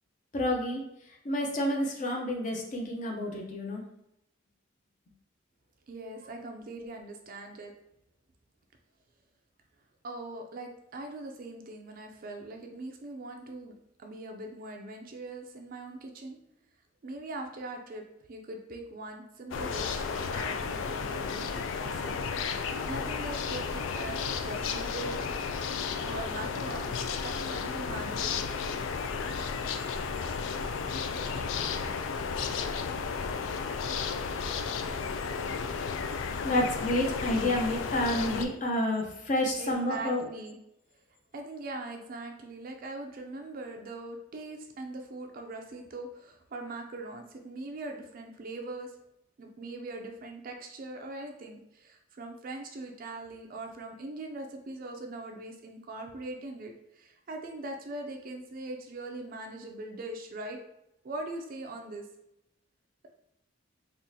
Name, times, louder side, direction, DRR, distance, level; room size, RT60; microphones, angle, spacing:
voice 1, 0.3-0.8 1.2-3.8 36.4-40.3, left 1 dB, 40° left, 0 dB, 0.6 m, -29 dB
voice 2, 5.9-7.7 10.0-13.7 14.0-16.4 17.0-18.0 18.3-22.2 22.5-25.2 26.0-26.9 27.2-28.5 39.6-40.6 41.3-48.9 49.4-60.6 61.0-62.1, right 2 dB, 45° right, 3 dB, 0.4 m, -41 dB
sound 1, 19.5-38.5, left 5 dB, 85° left, 0.3 m, -33 dB
3.7 x 2.4 x 2.7 m, 0.83 s
head